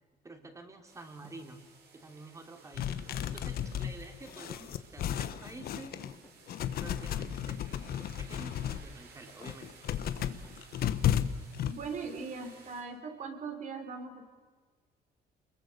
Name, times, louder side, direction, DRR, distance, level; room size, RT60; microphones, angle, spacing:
voice 1, 0.2-1.6 1.9-2.9 3.3-6.0 6.8-7.6 8.0-9.7, right 2 dB, 15° right, 5 dB, 3.1 m, -49 dB
sound 1, 0.9-12.8, right 5 dB, 70° right, 6.3 m, -57 dB
Thump thud, 1.2-1.4 2.8-3.9 4.3-5.3 5.7-7.1 7.7-7.9 8.2-8.5 10.0-11.1, left 2 dB, 15° left, 3.8 m, -57 dB
sound 2, 2.7-6.1 6.5-8.8 9.3-11.7, left 10 dB, 60° left, 1.3 m, -33 dB
voice 2, 11.7-14.2, right 4 dB, 45° right, 6 dB, 3.8 m, -40 dB
28.5 x 22.0 x 6.8 m, 1.5 s
cardioid pair, 150°, 17 cm